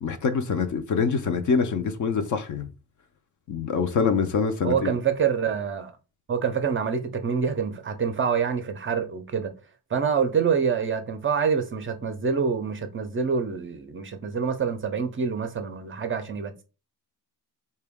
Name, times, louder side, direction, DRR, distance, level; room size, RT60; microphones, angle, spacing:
voice 1, 0.0-2.7 3.5-4.9, left 5 dB, 45° left, 0.5 m, -25 dB
voice 2, 4.6-5.9 6.3-9.5 9.9-16.6, right 6 dB, 30° right, 0.5 m, -26 dB
3.8 x 2.2 x 3.5 m
cardioid pair, 120°, 43 cm